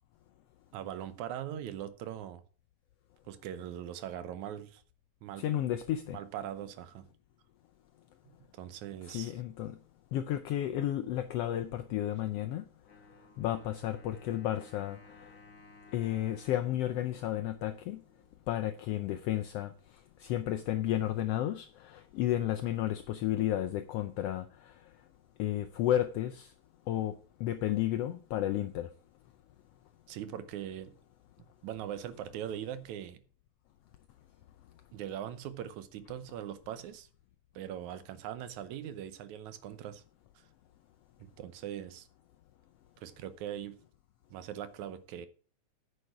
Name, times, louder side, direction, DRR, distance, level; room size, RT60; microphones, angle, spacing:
voice 1, 0.7-2.4 3.3-4.8 5.2-5.5 6.1-7.1 8.5-9.3 30.1-30.9 31.6-33.2 34.9-37.1 37.6-40.0 41.2-42.1 43.0-43.8 44.3-45.3, right 10 dB, 80° right, 2.3 m, -41 dB
voice 2, 5.4-6.2 9.1-9.7 10.1-12.6 13.4-15.3 15.9-18.0 18.5-19.7 20.2-24.7 25.4-26.5 26.9-28.9, left 12 dB, 80° left, 1.4 m, -32 dB
Wind instrument woodwind instrument, 12.8-18.5, left 3 dB, 35° left, 2.4 m, -58 dB
9.7 x 6.5 x 5.7 m
omnidirectional pair, 3.4 m